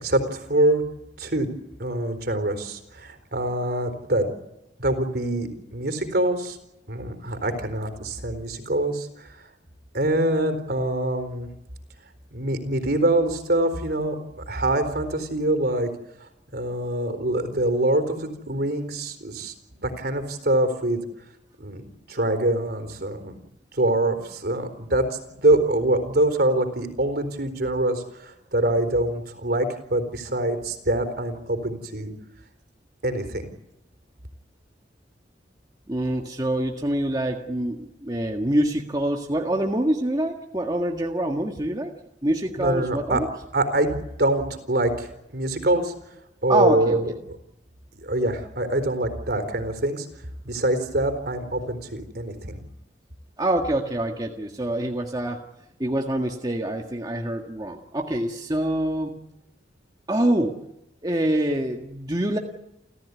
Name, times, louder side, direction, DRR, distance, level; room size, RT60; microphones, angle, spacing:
voice 1, 0.0-0.8 1.2-1.5 1.8-4.3 4.8-6.6 6.9-9.4 9.9-11.5 12.3-14.2 14.5-15.9 16.5-21.0 21.6-23.3 23.7-25.1 25.4-32.1 33.0-33.5 42.6-43.2 43.5-45.9 46.4-47.1 48.0-50.1 50.4-52.6, right 1 dB, 60° right, 9 dB, 4.1 m, -24 dB
voice 2, 35.9-41.9 42.2-43.3 46.5-47.0 53.4-55.4 55.8-59.1 60.1-60.6 61.0-62.4, right 1 dB, 20° right, 2 dB, 1.8 m, -25 dB
30.0 x 15.0 x 9.7 m, 0.87 s
head